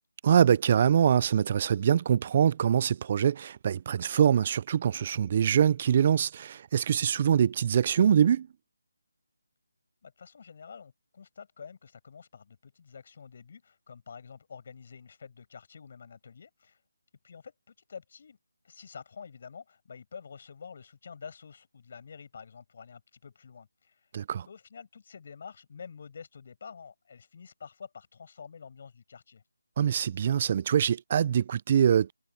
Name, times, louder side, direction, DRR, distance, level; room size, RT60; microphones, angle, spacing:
voice 1, 0.2-8.5 24.1-24.4 29.8-32.1, right 8 dB, 30° right, 0.4 m, -24 dB
voice 2, 10.0-16.8 17.2-18.4 18.6-24.1 24.4-29.4, left 6 dB, 40° left, 7.7 m, -48 dB
figure-of-eight pair, 165°, 0 cm